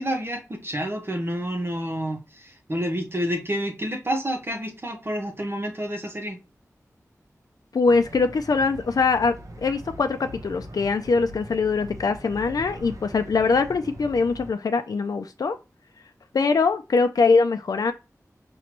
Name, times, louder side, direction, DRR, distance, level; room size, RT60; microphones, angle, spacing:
voice 1, 0.0-6.4, equal, 40° right, 1.4 m, -29 dB
voice 2, 7.7-15.6 16.3-17.9, left 4 dB, 90° left, 0.4 m, -22 dB
sound 1, 7.8-14.5, equal, 60° right, 1.0 m, -41 dB
5.8 x 3.0 x 3.0 m
wide cardioid pair, 70°, 6 cm